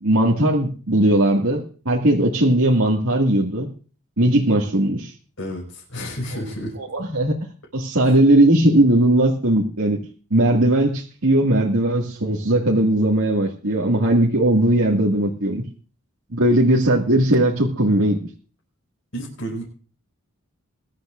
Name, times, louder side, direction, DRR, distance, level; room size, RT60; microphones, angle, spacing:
voice 1, 0.0-3.7 4.2-5.1 6.8-7.4 7.7-10.0 10.3-15.6 16.3-18.2, right 1 dB, 75° right, -3 dB, 2.2 m, -18 dB
voice 2, 5.4-6.7 8.0-8.2 19.1-19.6, equal, 65° left, -3 dB, 5.4 m, -31 dB
22.5 x 13.0 x 2.6 m, 0.38 s
head